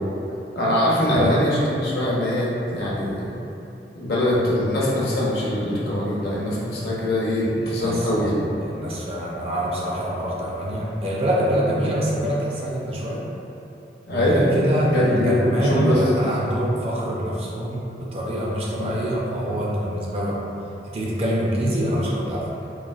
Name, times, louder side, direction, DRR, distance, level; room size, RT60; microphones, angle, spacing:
voice 1, 0.5-3.2 3.9-8.3 14.1-14.7 14.9-16.0 18.8-18.9, left 1 dB, 60° left, -7 dB, 0.6 m, -22 dB
voice 2, 7.6-8.4 8.6-13.2 14.1-20.4 20.9-22.5, equal, 35° right, -5 dB, 0.4 m, -25 dB
3.1 x 2.4 x 2.3 m, 2.8 s
head